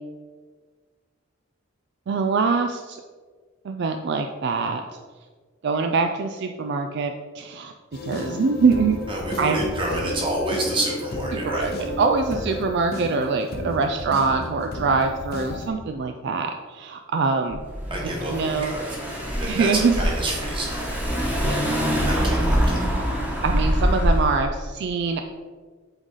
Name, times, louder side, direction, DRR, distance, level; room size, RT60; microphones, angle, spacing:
voice 1, 2.1-3.0 3.6-4.8 5.6-7.7 8.0-9.0 9.4-9.6 11.3-17.6 18.2-18.7 19.4-19.9 21.4-21.7 23.4-25.2, right 4 dB, 60° right, 6 dB, 0.4 m, -24 dB
sound 1, 7.9-15.7, left 2 dB, 50° left, 0.8 m, -33 dB
voice 2, 9.1-11.8 17.9-20.9 22.0-22.8, right 1 dB, 25° right, -2 dB, 1.5 m, -29 dB
Car / Engine, 17.5-24.4, equal, 10° right, 1.2 m, -24 dB
7.9 x 4.0 x 3.8 m, 1.5 s
head